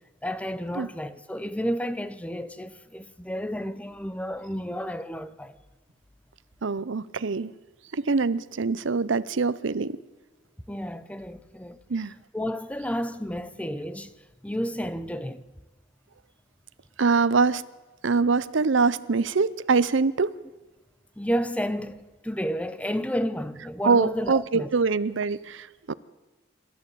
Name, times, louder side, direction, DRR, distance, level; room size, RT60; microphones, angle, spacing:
voice 1, 0.2-5.6 10.7-11.8 12.3-14.1 14.4-15.4 21.2-24.7, equal, 5° left, 0.9 m, -31 dB
voice 2, 6.6-7.5 7.9-10.0 11.9-12.1 17.0-17.6 18.0-20.3 23.8-25.9, right 4 dB, 75° right, 0.7 m, -24 dB
26.5 x 13.5 x 8.5 m
head